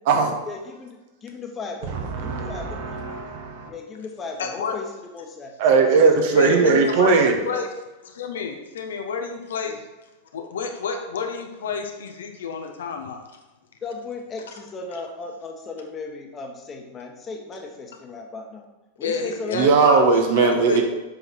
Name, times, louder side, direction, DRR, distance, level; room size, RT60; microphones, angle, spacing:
voice 1, 0.5-3.0 3.7-4.9 5.1-7.2 7.5-7.7 9.7-9.8 13.8-18.6 19.0-19.7, left 4 dB, 25° left, 3 dB, 1.4 m, -36 dB
voice 2, 2.0-3.7 5.6-7.4 19.5-20.8, right 4 dB, 50° right, 3 dB, 1.3 m, -19 dB
voice 3, 4.4-4.8 6.3-7.7 8.0-9.7 10.3-13.2 19.0-20.8, left 5 dB, 65° left, 4 dB, 1.0 m, -30 dB
7.5 x 5.6 x 4.6 m, 1.1 s
figure-of-eight pair, 90°, 0 cm